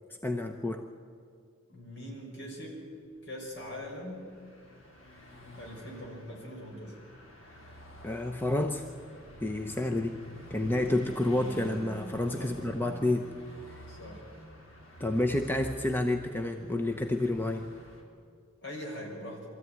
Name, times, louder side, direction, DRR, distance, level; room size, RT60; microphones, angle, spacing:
voice 1, 0.2-0.9 8.0-8.8 9.4-10.2 10.5-13.3 13.7-13.8 15.0-17.7, left 1 dB, 10° left, 5 dB, 0.7 m, -29 dB
voice 2, 1.7-2.8 3.2-4.2 5.5-6.9 12.3-12.6 13.9-14.2 18.6-19.4, equal, 55° left, -1 dB, 5.9 m, -42 dB
Car passing by / Truck, 4.0-18.0, equal, 70° left, 3.7 m, -47 dB
23.5 x 14.0 x 9.5 m, 2.3 s
head